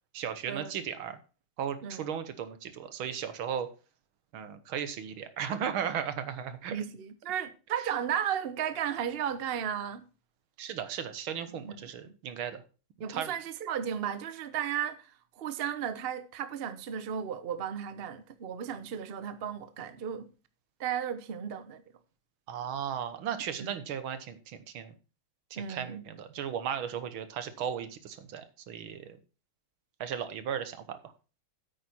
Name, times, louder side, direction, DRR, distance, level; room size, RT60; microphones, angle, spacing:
voice 1, 0.1-1.2 1.6-3.7 4.3-6.8 10.6-12.6 13.1-13.3 22.5-24.9 25.5-29.2 30.0-31.1, right 8 dB, 75° right, 1.9 m, -36 dB
voice 2, 6.7-10.0 11.5-11.8 13.0-20.3 20.8-21.8 23.6-23.7 25.6-26.0, right 8 dB, 60° right, 0.6 m, -34 dB
9.0 x 8.6 x 4.3 m
omnidirectional pair, 2.3 m